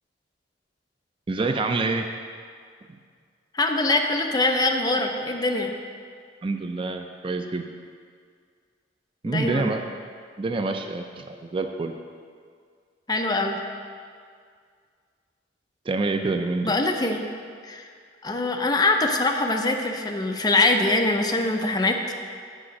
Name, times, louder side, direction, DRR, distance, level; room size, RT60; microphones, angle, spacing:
voice 1, 1.3-2.1 6.4-7.6 9.2-9.8 10.4-11.9 15.9-16.7, right 3 dB, 30° right, 5 dB, 0.4 m, -27 dB
voice 2, 3.5-5.7 9.2-9.7 13.1-13.6 16.6-17.2 17.6-17.9 18.2-22.1, left 2 dB, 20° left, 3 dB, 0.6 m, -23 dB
8.5 x 4.9 x 6.3 m, 2.1 s
head